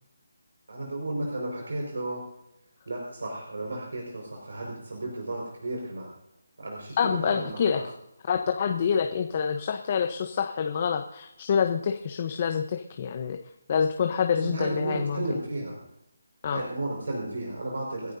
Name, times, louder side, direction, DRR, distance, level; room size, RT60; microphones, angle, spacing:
voice 1, 0.7-2.2 2.9-6.1 6.6-7.8 14.4-15.8 16.5-18.1, right 2 dB, 75° right, 0 dB, 5.2 m, -33 dB
voice 2, 7.0-7.8 8.3-13.4 13.7-15.4 16.4-16.6, left 7 dB, 30° left, 6 dB, 0.9 m, -27 dB
29.5 x 10.5 x 2.7 m, 0.84 s
hypercardioid pair, 170°, 0 cm